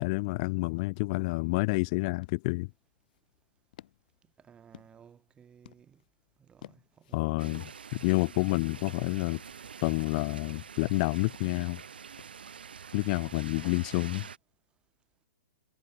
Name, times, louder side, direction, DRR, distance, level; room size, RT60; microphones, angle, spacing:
voice 1, 0.0-2.7 7.1-9.4 9.8-11.8 12.9-14.3, left 26 dB, 40° left, 0.4 m, -29 dB
sound 1, 1.3-13.6, left 13 dB, 60° left, 1.7 m, -59 dB
voice 2, 4.4-6.0 6.4-7.6, right 8 dB, 20° right, 2.6 m, -57 dB
sound 2, 7.4-14.4, right 7 dB, 80° right, 1.2 m, -46 dB
hypercardioid pair, 120°, 5 cm